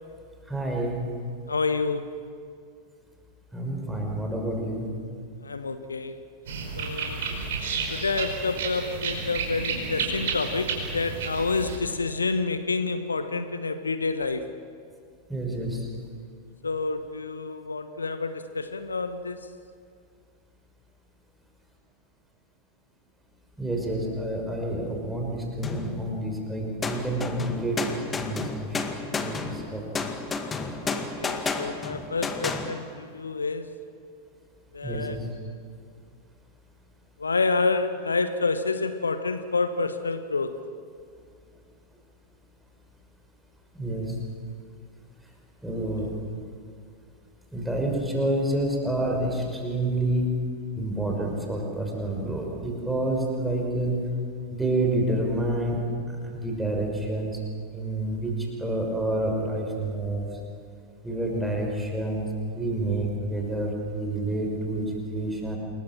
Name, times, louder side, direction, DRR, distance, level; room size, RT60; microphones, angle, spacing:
voice 1, 0.5-1.0 3.5-4.9 15.3-15.9 23.6-27.8 28.2-29.8 34.8-35.3 43.7-44.2 45.6-46.2 47.5-50.4 50.8-54.0 54.5-55.8 56.1-57.4 57.7-60.3 61.0-62.2 62.5-65.6, right 1 dB, 5° right, 0 dB, 5.5 m, -28 dB
voice 2, 1.5-2.1 5.4-6.2 6.8-7.2 7.9-14.5 16.6-19.5 30.8-33.7 34.7-35.2 35.5-35.6 37.2-40.7, left 4 dB, 75° left, 11 dB, 1.1 m, -28 dB
sound 1, 6.5-11.8, right 4 dB, 60° right, 5.2 m, -31 dB
sound 2, 25.6-26.4 26.8-32.7, left 4 dB, 15° left, 2.0 m, -32 dB
28.0 x 22.0 x 7.6 m, 2.3 s
figure-of-eight pair, 90°, 0 cm